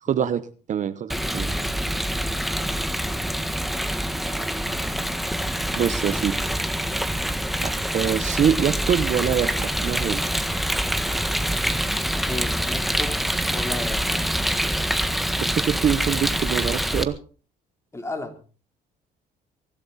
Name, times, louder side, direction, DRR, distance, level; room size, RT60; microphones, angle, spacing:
voice 1, 0.0-1.5 5.8-6.6 7.6-10.2 15.4-17.2, right 8 dB, 45° right, 13 dB, 1.0 m, -25 dB
voice 2, 1.1-1.8 12.1-13.2 13.5-14.2 17.9-18.4, left 2 dB, 15° left, 6 dB, 3.8 m, -35 dB
Rain, 1.1-17.0, equal, ahead, 1.6 m, -25 dB
23.5 x 12.0 x 4.2 m, 0.37 s
cardioid pair, 110°, 17 cm